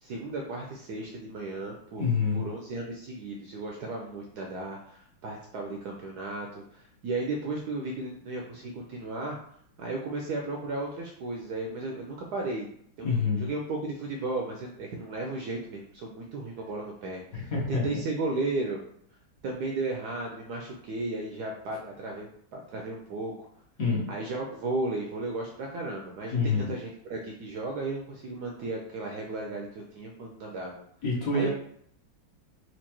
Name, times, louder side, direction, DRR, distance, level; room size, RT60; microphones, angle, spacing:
voice 1, 0.0-2.0 2.3-9.4 9.8-12.7 13.0-18.8 19.4-23.3 24.1-26.4 26.7-30.8 31.3-31.5, right 2 dB, 75° right, 0 dB, 0.9 m, -35 dB
voice 2, 2.0-2.5 13.0-13.5 17.3-17.9 23.8-24.0 26.3-26.7 31.0-31.5, left 4 dB, 55° left, -4 dB, 1.2 m, -27 dB
4.5 x 2.5 x 2.9 m, 0.64 s
omnidirectional pair, 2.1 m